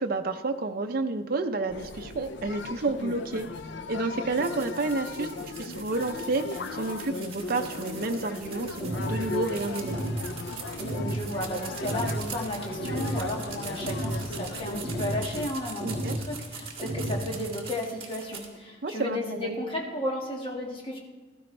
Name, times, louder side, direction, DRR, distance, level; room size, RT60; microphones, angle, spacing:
voice 1, 0.0-3.5 3.9-5.3 5.6-10.0 15.8-16.2 18.8-19.5, right 3 dB, 55° right, 5 dB, 0.6 m, -30 dB
sound 1, 1.7-15.5, left 3 dB, 70° left, 0.5 m, -38 dB
sound 2, 4.4-18.5, right 6 dB, 35° right, 2.2 m, -42 dB
sound 3, 8.8-9.2 9.8-10.2 10.8-11.2 11.8-12.2 12.8-13.2 13.8-14.2 14.8-15.2 15.8-16.2 16.8-17.2, right 1 dB, 10° left, 4.3 m, -31 dB
voice 2, 10.8-21.0, left 1 dB, 30° left, -1 dB, 1.7 m, -34 dB
15.5 x 13.0 x 3.3 m, 1.3 s
head